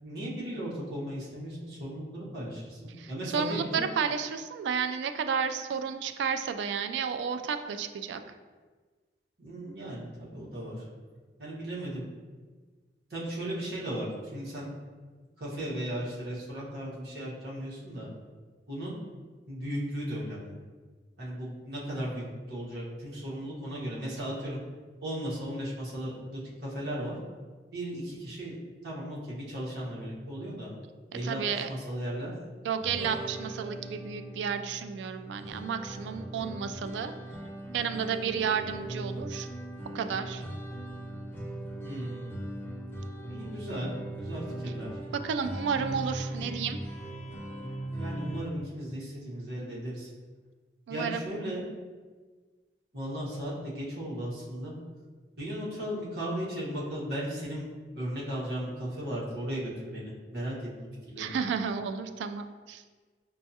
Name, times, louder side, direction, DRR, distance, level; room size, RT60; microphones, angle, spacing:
voice 1, 0.0-3.9 9.4-10.8 11.4-12.0 13.1-14.7 15.4-18.1 18.7-19.0 19.5-20.6 21.2-24.6 25.0-27.2 27.7-28.6 28.8-30.7 31.1-32.3 41.8-42.3 43.3-43.9 44.2-44.9 48.0-50.1 50.9-51.6 52.9-54.7 55.4-57.7 57.9-60.7 61.1-61.4, right 1 dB, 60° right, -7 dB, 1.2 m, -36 dB
voice 2, 3.0-8.2 31.2-31.7 32.6-37.1 37.7-39.5 39.9-40.4 45.1-46.8 50.9-51.2 61.2-62.8, right 6 dB, 85° right, 8 dB, 0.3 m, -32 dB
sound 1, 32.8-48.4, right 1 dB, 10° left, 0.5 m, -39 dB
5.3 x 2.3 x 2.7 m, 1.4 s
head